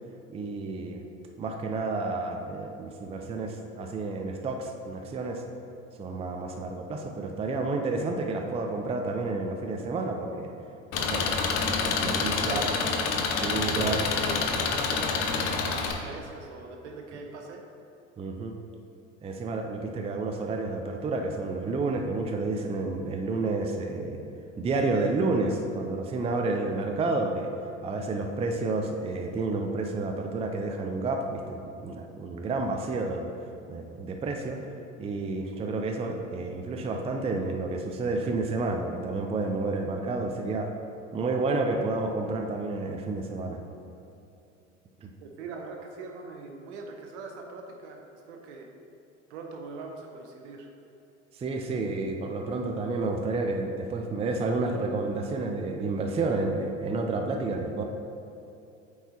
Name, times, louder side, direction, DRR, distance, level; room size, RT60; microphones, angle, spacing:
voice 1, 0.3-1.0 1.4-5.4 6.0-10.5 11.0-11.2 11.6-12.7 13.4-14.0 18.2-18.5 19.2-24.2 24.6-27.5 27.8-33.3 33.7-34.6 35.0-40.7 41.1-43.6 45.0-45.1 51.3-57.8, right 3 dB, 15° right, 3 dB, 0.5 m, -30 dB
Engine, 10.9-15.9, left 5 dB, 45° left, 0.8 m, -27 dB
voice 2, 12.1-13.0 13.5-17.6 45.2-48.0 48.3-48.7 49.3-50.7, right 3 dB, 65° right, 2 dB, 1.0 m, -41 dB
8.7 x 4.7 x 2.9 m, 2.8 s
hypercardioid pair, 75°, 37 cm